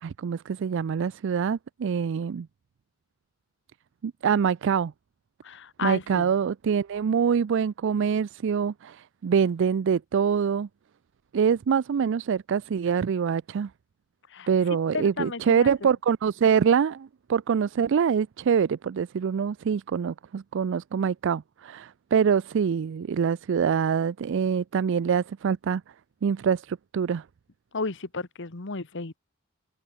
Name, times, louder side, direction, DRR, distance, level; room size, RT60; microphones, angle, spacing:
voice 1, 0.0-2.5 4.0-4.9 5.8-10.7 11.3-13.7 14.5-25.8 26.2-27.2, right 7 dB, 65° right, 0.4 m, -25 dB
voice 2, 5.4-6.3 14.3-14.5 14.9-15.9 27.7-29.2, left 4 dB, 65° left, 1.5 m, -33 dB
head